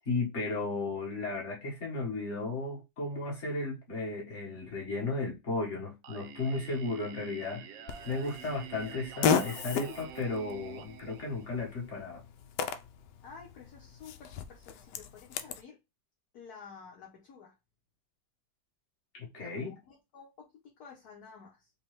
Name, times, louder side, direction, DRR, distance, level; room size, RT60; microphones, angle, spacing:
voice 1, 0.0-12.2 19.1-19.7, left 3 dB, 40° left, 1.7 m, -35 dB
Singing, 6.0-12.0, right 9 dB, 75° right, 1.2 m, -48 dB
Fart, 7.9-15.6, left 6 dB, 75° left, 1.1 m, -35 dB
voice 2, 13.2-15.8 16.3-17.6 19.4-21.7, left 5 dB, 60° left, 1.3 m, -51 dB
5.2 x 2.2 x 3.1 m
omnidirectional pair, 2.1 m